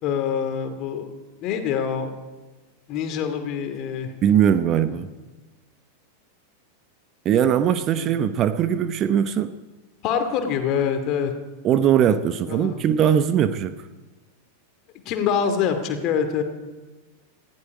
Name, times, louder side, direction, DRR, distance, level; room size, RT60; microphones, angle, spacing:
voice 1, 0.0-1.1 1.4-2.2 2.9-4.1 4.9-5.0 7.9-8.1 10.0-11.3 12.5-12.8 15.1-16.4, left 7 dB, 40° left, 7 dB, 2.5 m, -25 dB
voice 2, 4.2-5.1 7.2-9.5 11.6-13.8, right 9 dB, 30° right, 12 dB, 0.8 m, -20 dB
19.5 x 15.0 x 4.9 m, 1.2 s
figure-of-eight pair, 90°, 0 cm